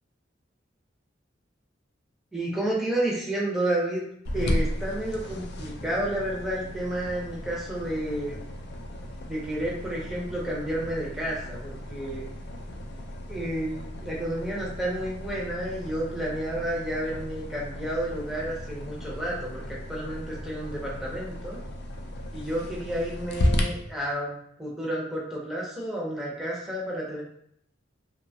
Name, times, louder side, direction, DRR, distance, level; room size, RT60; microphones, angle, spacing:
voice 1, 2.3-4.0 4.3-8.4 9.2-12.2 13.3-21.6 22.3-27.2, right 1 dB, ahead, -5 dB, 0.6 m, -31 dB
sound 1, 4.2-23.6, equal, 60° left, 0.4 m, -34 dB
2.7 x 2.2 x 2.6 m, 0.70 s
head